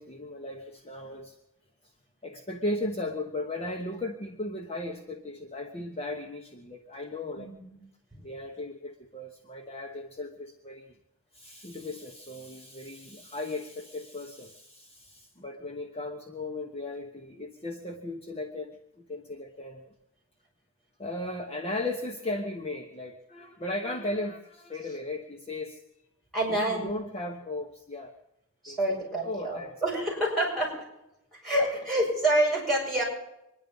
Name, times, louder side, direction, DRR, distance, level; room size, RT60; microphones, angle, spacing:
voice 1, 0.0-1.4 2.2-7.5 8.2-11.0 11.3-19.9 21.0-25.8 26.5-28.2 28.7-29.8, left 2 dB, 30° left, 2 dB, 1.1 m, -36 dB
voice 2, 26.3-26.9 28.6-30.7 31.4-33.0, right 1 dB, ahead, -2 dB, 7.4 m, -27 dB
24.5 x 11.0 x 5.4 m, 0.88 s
head